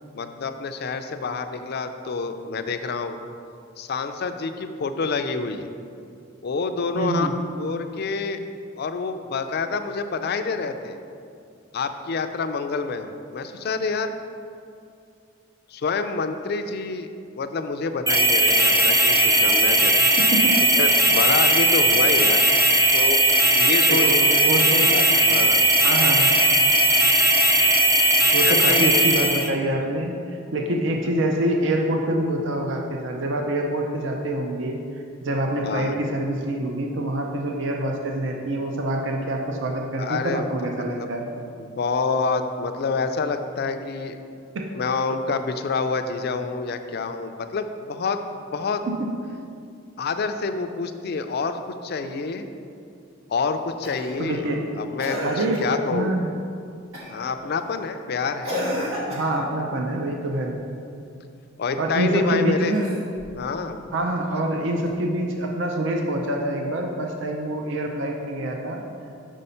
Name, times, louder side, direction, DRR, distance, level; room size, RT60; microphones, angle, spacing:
voice 1, 0.1-3.2 3.8-5.7 6.4-7.3 7.6-8.4 8.8-11.0 11.7-14.1 15.7-17.1 17.4-20.1 20.8-22.4 22.9-23.2 23.5-24.0 24.4-24.5 24.9-25.6 28.4-28.9 35.6-35.9 40.0-40.5 40.9-41.1 41.6-44.2 44.7-48.2 48.5-48.8 50.0-52.5 53.3-54.5 54.8-56.2 57.1-58.6 61.6-62.7 63.4-63.8, left 4 dB, 50° left, 8 dB, 0.4 m, -27 dB
voice 2, 6.9-7.3 20.2-20.6 23.9-25.0 25.8-26.3 28.3-34.8 35.2-41.3 44.5-44.7 48.9-49.1 54.2-54.6 55.2-56.3 59.1-60.6 61.8-62.9 63.9-68.8, right 1 dB, 60° right, 2 dB, 0.6 m, -26 dB
sound 1, 18.1-29.5, right 1 dB, 15° right, 0.6 m, -18 dB
Cough, 53.8-54.2 55.0-55.8 56.9-57.3 58.4-59.5 62.6-63.4 64.9-65.0, equal, 80° right, 1.5 m, -31 dB
5.3 x 5.0 x 5.6 m, 2.5 s
head